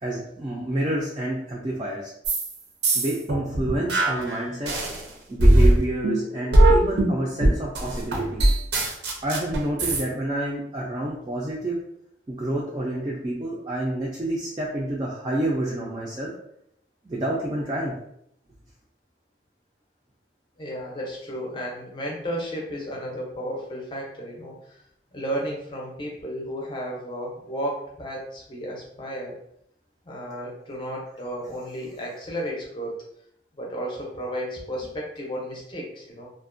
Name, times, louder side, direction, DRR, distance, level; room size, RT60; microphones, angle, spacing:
voice 1, 0.0-2.1 2.9-4.7 5.3-8.4 9.2-11.8 12.3-16.3 17.0-17.9, right 1 dB, 25° right, -4 dB, 0.3 m, -28 dB
sound 1, 2.2-2.5 2.8-5.0 5.4-10.0, right 1 dB, 80° right, 0.5 m, -20 dB
voice 2, 20.6-24.6 25.1-29.3 30.1-33.0 33.6-36.3, equal, 25° left, -2 dB, 0.5 m, -33 dB
2.4 x 2.1 x 2.5 m, 0.74 s
head